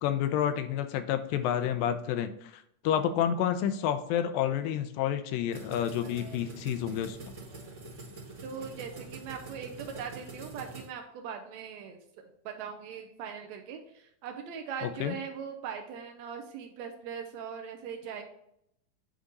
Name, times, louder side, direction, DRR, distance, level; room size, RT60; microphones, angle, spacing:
voice 1, 0.0-7.3 14.8-15.2, left 10 dB, 85° left, 10 dB, 2.3 m, -29 dB
sound 1, 5.5-10.9, right 3 dB, 35° right, 0.5 m, -45 dB
voice 2, 8.4-18.2, right 7 dB, 85° right, 3 dB, 1.5 m, -40 dB
8.8 x 3.7 x 4.1 m, 0.75 s
omnidirectional pair, 4.0 m